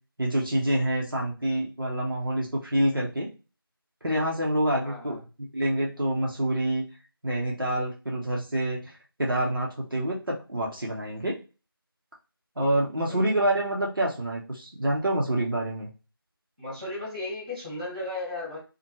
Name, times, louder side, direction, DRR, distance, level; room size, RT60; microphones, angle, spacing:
voice 1, 0.2-3.3 4.0-6.8 7.2-11.4 12.6-15.9, right 1 dB, 60° right, -3 dB, 0.7 m, -27 dB
voice 2, 4.8-5.2 13.1-13.3 16.6-18.6, left 2 dB, 20° right, -9 dB, 1.0 m, -35 dB
2.8 x 2.1 x 2.8 m, 0.33 s
figure-of-eight pair, 180°, 13 cm